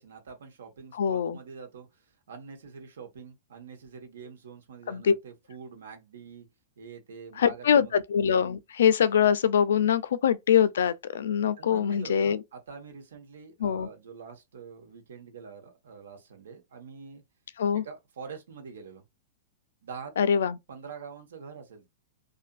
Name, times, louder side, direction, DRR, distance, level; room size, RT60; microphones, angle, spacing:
voice 1, 0.0-6.5 6.8-8.0 10.0-10.2 11.6-17.2 17.8-19.0 19.8-20.3 20.7-21.9, right 6 dB, 90° right, 1.1 m, -45 dB
voice 2, 1.0-1.4 4.9-5.1 7.4-12.4 13.6-13.9 17.6-17.8 20.2-20.6, left 8 dB, 75° left, 0.4 m, -23 dB
2.5 x 2.4 x 2.4 m
supercardioid pair, 175°, 0 cm